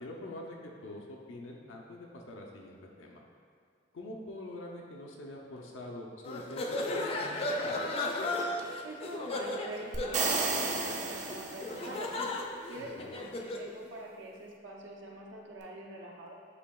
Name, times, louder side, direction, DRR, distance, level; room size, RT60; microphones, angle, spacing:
voice 1, 0.0-3.2 3.9-7.8 12.8-13.2, left 1 dB, 85° left, -1 dB, 0.5 m, -45 dB
sound 1, 6.2-13.7, left 2 dB, 30° left, 0.3 m, -35 dB
voice 2, 8.8-12.2 12.7-16.3, right 1 dB, 80° right, -2 dB, 0.7 m, -45 dB
sound 2, 9.9-12.0, right 4 dB, 40° right, 0.4 m, -32 dB
8.2 x 2.7 x 2.3 m, 2.2 s
head